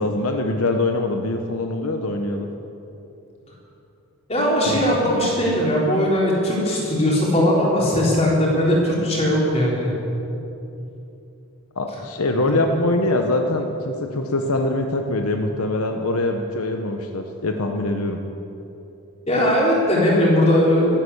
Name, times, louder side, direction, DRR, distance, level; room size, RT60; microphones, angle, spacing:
voice 1, 0.0-2.5 4.6-5.3 11.8-18.2, left 2 dB, 85° left, 4 dB, 1.0 m, -23 dB
voice 2, 4.3-9.9 19.3-20.9, equal, 30° left, -4 dB, 3.9 m, -19 dB
13.0 x 12.0 x 8.4 m, 2.9 s
head